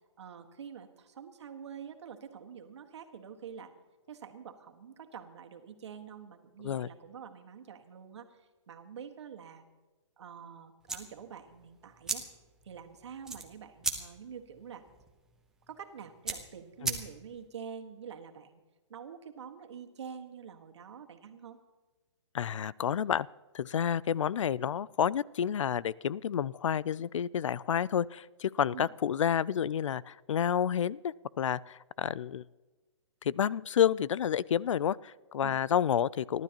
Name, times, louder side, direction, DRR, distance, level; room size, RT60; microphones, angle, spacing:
voice 1, 0.2-3.7 4.1-9.6 10.2-12.2 12.6-14.8 15.7-18.6 18.9-21.6 28.7-28.9 35.4-35.6, right 7 dB, 65° right, 4 dB, 1.7 m, -47 dB
sound 1, 10.8-17.5, right 4 dB, 5° right, 0.8 m, -39 dB
voice 2, 22.3-23.3 23.5-32.4 33.2-36.4, left 9 dB, 80° left, 22 dB, 0.4 m, -30 dB
29.5 x 12.0 x 3.0 m, 1.2 s
hypercardioid pair, 160°, 16 cm